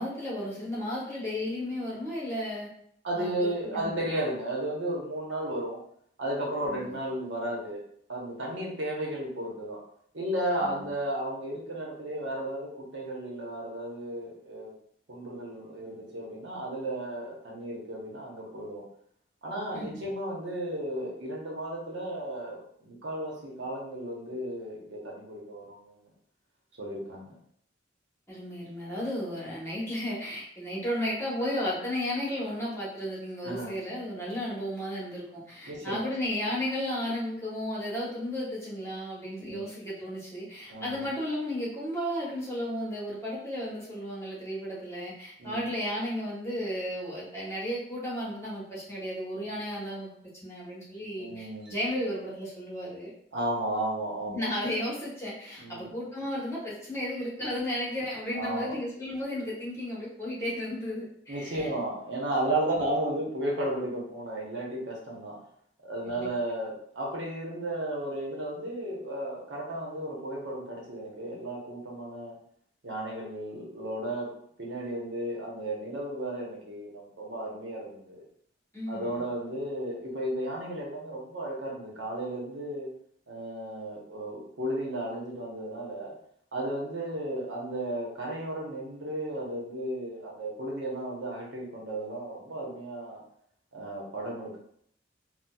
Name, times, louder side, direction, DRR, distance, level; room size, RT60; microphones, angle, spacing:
voice 1, 0.0-2.7 3.1-3.9 6.7-7.0 10.6-10.9 19.7-20.0 28.3-50.1 50.4-53.1 54.3-61.7 66.0-66.3 78.7-79.2, left 1 dB, 15° left, -6 dB, 1.1 m, -34 dB
voice 2, 3.0-5.8 6.2-7.8 8.1-9.8 10.1-14.7 15.1-18.9 19.4-26.1 26.8-27.3 33.4-33.7 35.7-36.2 39.4-39.7 40.7-41.1 45.4-45.9 51.2-52.1 53.3-54.7 55.6-55.9 57.0-57.1 58.3-58.8 61.3-65.4 65.8-72.3 72.8-74.3 74.6-78.2 78.9-82.9 83.3-86.1 86.5-93.2 93.7-94.6, right 1 dB, 80° right, -3 dB, 0.9 m, -34 dB
4.1 x 2.2 x 2.3 m, 0.68 s
head